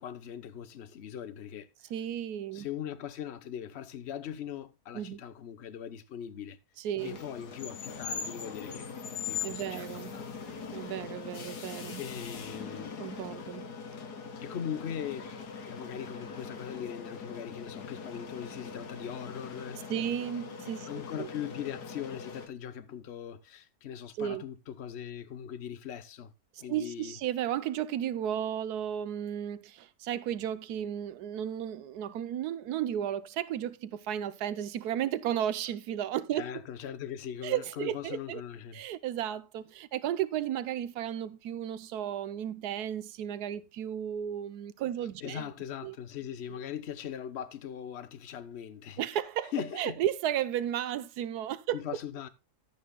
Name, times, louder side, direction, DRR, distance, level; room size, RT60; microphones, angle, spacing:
voice 1, 0.0-1.7 2.5-6.6 7.0-8.9 9.3-10.3 11.0-11.1 12.0-13.0 14.4-15.3 15.7-19.8 20.9-26.3 26.6-27.1 36.3-38.8 45.2-49.0 49.5-50.0 51.7-52.3, left 9 dB, 50° left, 1.0 m, -40 dB
voice 2, 1.9-2.7 4.9-5.2 6.8-7.2 9.4-10.1 10.7-12.0 13.0-13.7 19.9-20.9 21.2-21.3 24.2-24.4 26.6-36.5 37.4-38.4 38.7-45.5 45.8-45.9 49.0-51.8, right 10 dB, 80° right, 1.3 m, -34 dB
sound 1, 7.0-22.5, left 5 dB, 85° left, 2.0 m, -41 dB
14.0 x 8.7 x 2.2 m
omnidirectional pair, 1.7 m